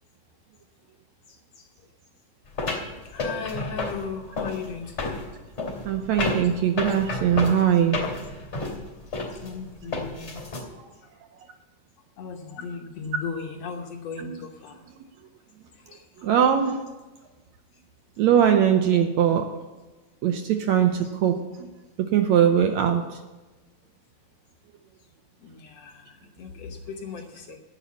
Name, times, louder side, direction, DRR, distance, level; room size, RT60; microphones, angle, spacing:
Metal Footsteps, 2.6-10.6, left 3 dB, 20° left, 2.8 m, -31 dB
voice 1, 3.1-5.2 6.8-6.9 9.3-10.4 12.2-14.7 15.9-16.0 25.4-26.0 26.4-27.6, left 5 dB, 65° left, 3 dB, 1.8 m, -36 dB
voice 2, 5.9-8.0 14.2-14.4 16.2-16.8 18.2-19.5 20.2-21.4 22.0-23.0, right 9 dB, 75° right, 6 dB, 1.7 m, -21 dB
11.0 x 8.4 x 8.5 m, 1.2 s
omnidirectional pair, 3.8 m